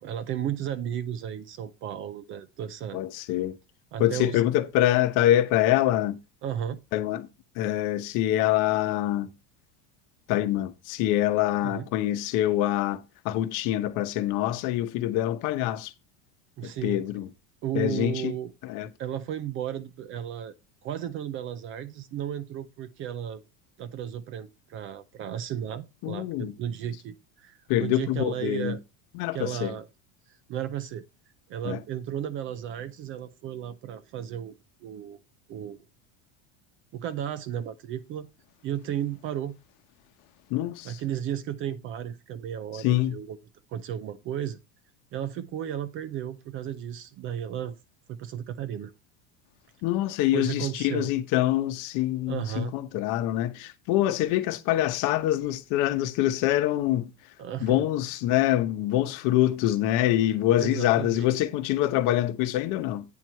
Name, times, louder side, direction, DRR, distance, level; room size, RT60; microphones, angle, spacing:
voice 1, 0.0-3.0 3.9-4.4 6.4-6.8 11.6-11.9 16.6-17.0 17.6-18.5 19.0-20.5 20.8-23.4 23.8-28.8 29.3-29.9 30.3-31.0 31.5-34.5 34.8-35.2 35.5-35.8 36.9-38.3 38.6-39.5 40.8-43.4 43.7-44.6 45.1-47.8 48.1-48.9 50.3-51.1 52.3-52.7 57.4-57.8 60.6-61.3, right 10 dB, 30° right, 0.5 m, -34 dB
voice 2, 2.9-3.6 4.0-6.2 6.9-7.3 7.6-9.3 10.3-15.9 16.6-17.3 17.7-18.3 18.6-18.9 26.0-26.5 27.7-28.7 29.1-29.7 31.6-31.8 40.5-41.0 42.8-43.2 49.8-57.1 57.6-63.0, left 13 dB, 50° left, 1.0 m, -25 dB
9.0 x 4.6 x 5.5 m
cardioid pair, 165°, 41 cm